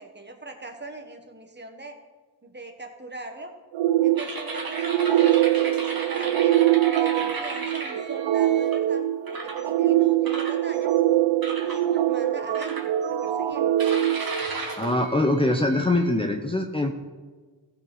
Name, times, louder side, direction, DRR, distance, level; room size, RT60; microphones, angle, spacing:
voice 1, 0.0-2.0 2.4-3.5 4.0-6.6 7.0-10.9 11.6-13.7, right 2 dB, 25° right, 4 dB, 1.5 m, -41 dB
sound 1, 3.7-15.1, right 13 dB, 75° right, 0.6 m, -23 dB
sound 2, 4.2-8.7 9.3-9.7 10.2-11.0 11.4-11.8 12.5-13.3 13.8-16.1, right 3 dB, 50° right, 2.1 m, -35 dB
voice 2, 14.8-16.9, left 1 dB, 10° left, 2 dB, 0.8 m, -23 dB
14.5 x 5.1 x 5.5 m, 1.4 s
cardioid pair, 65°, 45 cm